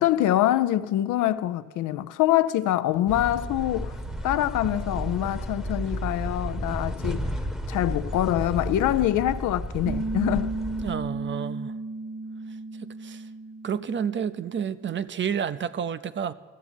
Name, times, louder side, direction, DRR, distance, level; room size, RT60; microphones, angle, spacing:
voice 1, 0.0-4.0 4.2-7.3 7.7-10.5, left 13 dB, 80° left, 0.6 m, -25 dB
sound 1, 3.1-10.9, equal, ahead, 0.9 m, -32 dB
Piano, 9.8-15.0, right 3 dB, 85° right, 2.9 m, -34 dB
voice 2, 10.8-11.8 12.8-13.3 13.6-16.3, right 8 dB, 40° right, 0.5 m, -30 dB
14.0 x 7.1 x 8.9 m
cardioid pair, 90°, 30 cm